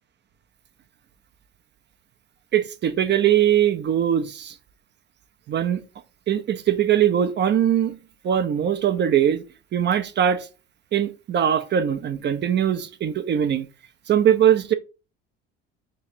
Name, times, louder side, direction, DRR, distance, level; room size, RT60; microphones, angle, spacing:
voice 1, 2.5-4.5 5.5-5.8 6.3-8.0 8.2-9.4 9.7-10.5 10.9-13.7 14.1-14.7, right 9 dB, 35° right, 0.4 m, -21 dB
3.0 x 2.5 x 4.3 m
supercardioid pair, 95°, 30 cm